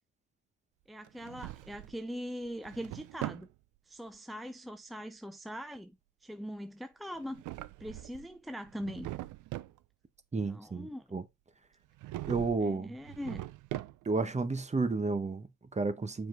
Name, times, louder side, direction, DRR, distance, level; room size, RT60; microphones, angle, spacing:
voice 1, 0.9-3.5 3.9-7.4 7.8-9.1 10.4-11.2 12.6-13.4, equal, ahead, 0.6 m, -42 dB
Drawer open or close, 1.0-2.0 2.5-3.5 7.1-8.3 8.7-9.8 12.0-12.7 13.0-14.3, right 16 dB, 85° right, 0.6 m, -41 dB
voice 2, 10.3-11.2 12.3-12.9 14.1-16.3, right 3 dB, 25° right, 1.1 m, -32 dB
7.1 x 5.0 x 3.8 m
cardioid pair, 90°, 30 cm